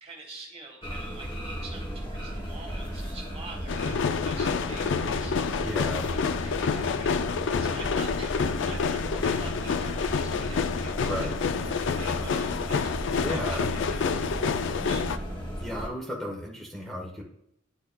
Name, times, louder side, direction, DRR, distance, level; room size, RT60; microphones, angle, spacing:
voice 1, 0.0-5.6 6.1-15.1, right 3 dB, 30° right, 1 dB, 1.2 m, -46 dB
sound 1, 0.8-15.9, equal, 25° left, 1.2 m, -35 dB
sound 2, 3.7-15.2, left 5 dB, 65° left, 0.4 m, -28 dB
voice 2, 5.6-6.0 11.0-11.3 13.2-13.7 15.6-17.2, equal, ahead, -1 dB, 0.9 m, -34 dB
10.0 x 4.5 x 2.2 m, 0.76 s
head